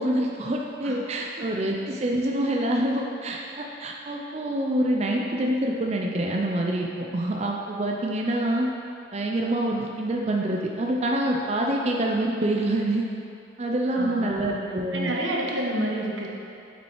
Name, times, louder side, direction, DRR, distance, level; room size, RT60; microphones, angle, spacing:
voice 1, 0.0-8.7 9.1-13.1 13.6-15.1, right 1 dB, 35° right, 0 dB, 0.5 m, -26 dB
voice 2, 13.9-14.6 14.9-16.3, right 1 dB, 85° right, -2 dB, 1.1 m, -29 dB
7.1 x 6.0 x 4.7 m, 2.6 s
head